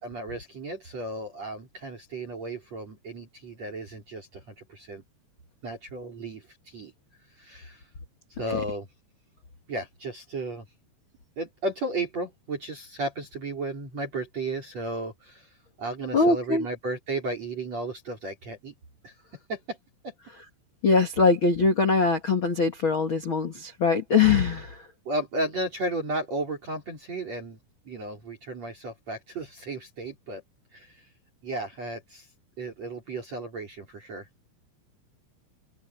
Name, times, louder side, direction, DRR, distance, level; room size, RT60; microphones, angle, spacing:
voice 1, 0.0-5.0 5.6-6.9 7.3-7.9 8.4-8.9 9.7-10.6 11.4-18.7 19.0-19.1 19.5-19.8 20.0-20.1 25.0-27.6 27.8-30.4 30.7-31.1 31.4-32.3 32.6-34.3, right 2 dB, 35° right, 5.1 m, -34 dB
voice 2, 16.1-16.7 20.8-24.9, left 4 dB, 75° left, 1.1 m, -22 dB
open air
omnidirectional pair, 5.5 m